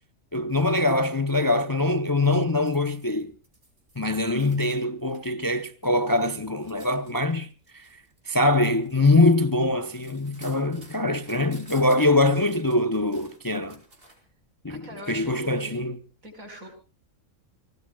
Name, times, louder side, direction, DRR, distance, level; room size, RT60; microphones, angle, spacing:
voice 1, 0.3-3.3 4.0-7.5 7.7-7.9 8.3-13.8 14.6-16.0, left 2 dB, 20° left, 0.6 m, -23 dB
sound 1, 2.2-5.3 5.7-14.3 15.1-15.3, right 1 dB, 45° right, 4.4 m, -53 dB
voice 2, 14.7-15.8 16.2-16.7, equal, 85° right, 5.4 m, -42 dB
29.5 x 19.0 x 2.3 m
omnidirectional pair, 1.4 m